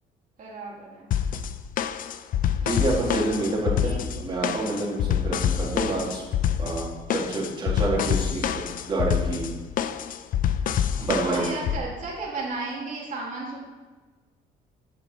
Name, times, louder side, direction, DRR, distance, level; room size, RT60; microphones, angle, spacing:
voice 1, 0.4-1.1 2.6-2.8 3.8-4.3 10.9-13.6, right 3 dB, 50° right, -4 dB, 2.4 m, -34 dB
sound 1, 1.1-11.8, left 9 dB, 55° left, 0.5 m, -26 dB
voice 2, 2.6-6.2 6.6-9.5 11.0-11.6, right 2 dB, 25° right, -5 dB, 2.2 m, -28 dB
8.0 x 5.2 x 5.4 m, 1.3 s
cardioid pair, 110°, 17 cm